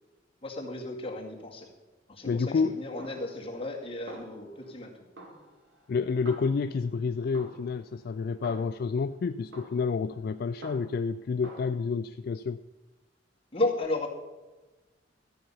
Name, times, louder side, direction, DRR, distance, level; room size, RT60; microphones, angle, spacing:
voice 1, 0.4-1.7 2.1-4.9 13.5-14.1, left 2 dB, 30° left, 0 dB, 2.0 m, -33 dB
voice 2, 2.2-2.8 5.9-12.6, left 5 dB, 55° left, 12 dB, 0.3 m, -29 dB
Snare drum, 3.0-3.8 4.1-4.8 5.2-6.9 7.3-9.0 9.5-11.1 11.4-11.7, right 1 dB, 75° right, 2.3 m, -48 dB
13.5 x 8.8 x 5.5 m, 1.2 s
head